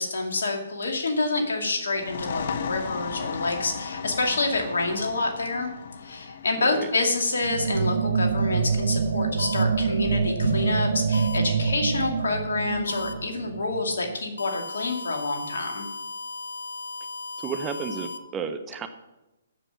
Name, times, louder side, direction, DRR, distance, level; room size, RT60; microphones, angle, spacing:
voice 1, 0.0-5.7 6.0-15.8, left 3 dB, 70° left, 2 dB, 2.3 m, -27 dB
sound 1, 1.9-9.3, left 6 dB, 55° left, 0.8 m, -36 dB
sound 2, 7.4-14.2, right 5 dB, 60° right, 1.0 m, -26 dB
sound 3, 9.4-9.6 11.1-11.4 12.9-13.1 14.4-18.2, left 3 dB, 90° left, 0.9 m, -36 dB
voice 2, 17.4-18.9, right 6 dB, 20° right, 8 dB, 0.9 m, -32 dB
7.6 x 7.4 x 7.3 m, 0.96 s
figure-of-eight pair, 135°, 0 cm